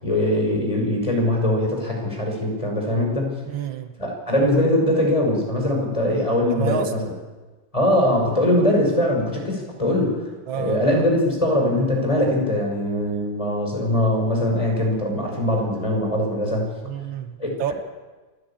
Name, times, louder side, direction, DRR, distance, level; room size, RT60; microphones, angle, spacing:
voice 1, 0.0-3.3 4.0-7.1 7.7-10.3 10.6-16.7 17.4-17.7, left 1 dB, 15° left, 0 dB, 5.8 m, -21 dB
voice 2, 3.5-4.0 6.4-6.9 10.5-10.9 16.8-17.7, right 8 dB, 75° right, 9 dB, 1.7 m, -29 dB
28.0 x 11.0 x 8.9 m, 1.3 s
omnidirectional pair, 2.2 m